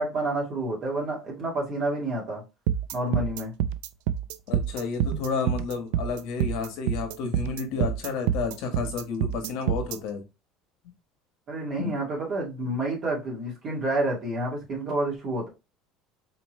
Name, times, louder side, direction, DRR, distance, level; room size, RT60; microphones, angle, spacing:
voice 1, 0.0-2.4 2.9-3.5 11.5-15.5, right 1 dB, 35° right, 2.0 m, -29 dB
sound 1, 2.7-10.0, right 10 dB, 85° right, 0.3 m, -27 dB
voice 2, 4.5-10.2 11.8-11.9, left 5 dB, 65° left, 1.1 m, -31 dB
4.2 x 3.0 x 3.1 m
cardioid pair, 160°, 0 cm